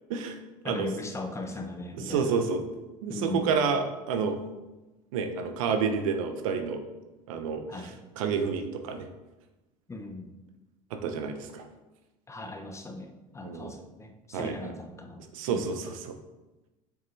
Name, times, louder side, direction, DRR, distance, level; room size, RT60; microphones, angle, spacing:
voice 1, 0.6-2.3 3.1-3.5 7.7-8.0 9.9-10.3 12.3-15.6, left 2 dB, 15° left, 4 dB, 0.8 m, -38 dB
voice 2, 2.0-2.6 3.0-4.4 5.1-6.8 7.3-9.1 10.9-11.6 13.4-13.7 14.3-14.7 15.3-16.2, right 5 dB, 85° right, 7 dB, 0.8 m, -29 dB
7.0 x 5.5 x 3.3 m, 1.1 s
supercardioid pair, 100°, 17 cm